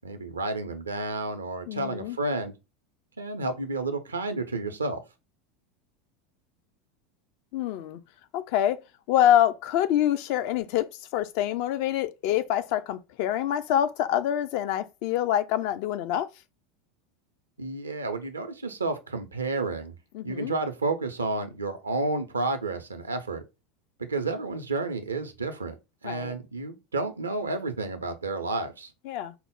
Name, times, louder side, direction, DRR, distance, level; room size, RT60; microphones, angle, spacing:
voice 1, 0.0-2.5 3.2-5.0 17.6-20.0 20.2-23.4 24.0-25.7 26.0-28.9, right 3 dB, 80° right, 0.5 m, -31 dB
voice 2, 1.7-2.2 7.5-8.0 8.3-8.8 9.1-16.3 20.1-20.5 26.0-26.3 29.1-29.3, left 11 dB, 50° left, 0.3 m, -26 dB
4.3 x 2.0 x 3.6 m
figure-of-eight pair, 80°, 0 cm